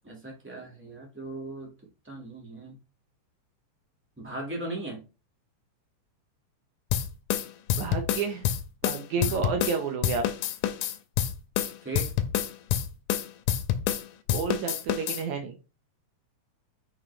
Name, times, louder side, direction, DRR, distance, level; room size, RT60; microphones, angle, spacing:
voice 1, 0.0-1.7 2.0-2.8 4.2-5.0 9.2-9.5 11.8-12.1, right 2 dB, 5° right, 0 dB, 0.9 m, -38 dB
sound 1, 6.9-9.8 10.0-14.0 14.3-15.2, left 10 dB, 85° left, 2.1 m, -27 dB
voice 2, 7.7-8.4 8.8-10.2 14.3-15.6, right 5 dB, 75° right, 4 dB, 2.2 m, -30 dB
5.7 x 5.1 x 3.2 m, 0.30 s
omnidirectional pair, 3.6 m